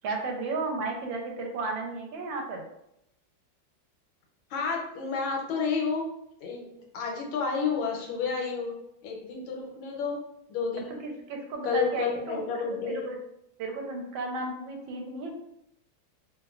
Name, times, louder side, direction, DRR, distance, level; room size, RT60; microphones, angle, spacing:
voice 1, 0.0-2.6 10.8-12.4 12.9-13.2 13.6-15.4, right 3 dB, 80° right, 2 dB, 1.3 m, -34 dB
voice 2, 4.5-6.1 6.4-8.7 9.0-10.2 10.5-11.0 11.6-13.1, left 5 dB, 80° left, 0 dB, 1.4 m, -30 dB
3.1 x 2.1 x 2.3 m, 0.81 s
omnidirectional pair, 2.1 m